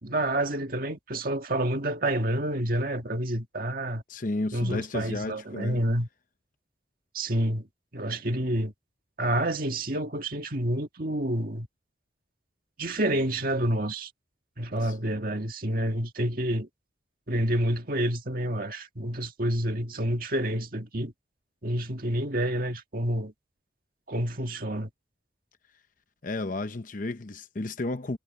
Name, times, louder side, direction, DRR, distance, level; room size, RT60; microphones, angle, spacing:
voice 1, 0.0-4.0 4.5-6.1 7.1-7.7 7.9-8.7 9.2-11.7 12.8-14.1 14.6-16.7 17.3-21.1 21.6-23.3 24.1-24.9, right 1 dB, 50° right, 1.8 m, -28 dB
voice 2, 4.1-5.8 14.8-14.9 26.2-28.2, left 2 dB, 45° left, 0.8 m, -32 dB
head